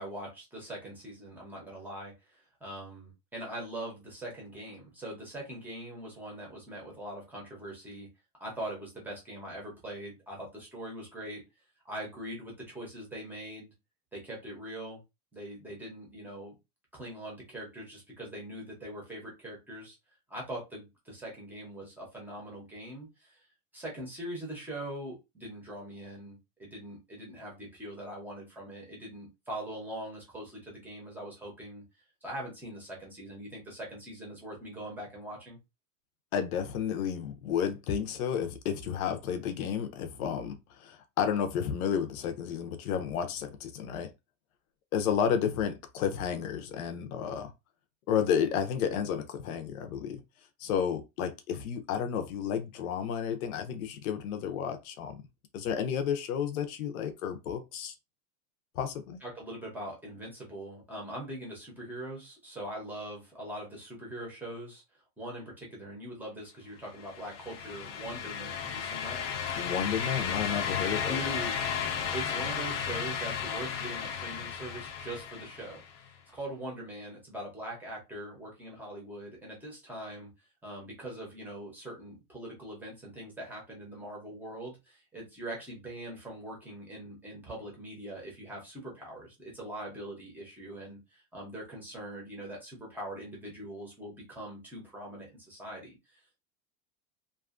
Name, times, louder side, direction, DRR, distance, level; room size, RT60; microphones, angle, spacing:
voice 1, 0.0-8.1 8.4-11.4 11.8-13.7 14.1-15.0 15.3-16.6 16.9-20.0 20.3-23.4 23.7-31.8 32.2-35.6 59.2-64.8 65.2-69.2 71.1-71.7 72.1-80.3 80.6-96.4, right 1 dB, 5° right, 0.6 m, -42 dB
voice 2, 36.3-44.1 44.9-47.5 48.1-50.2 50.6-55.2 55.5-57.9 58.7-59.2 69.6-71.2, left 8 dB, 85° left, 0.7 m, -31 dB
sound 1, 67.0-75.9, left 7 dB, 45° left, 0.5 m, -34 dB
2.6 x 2.4 x 2.4 m
supercardioid pair, 165°, 42 cm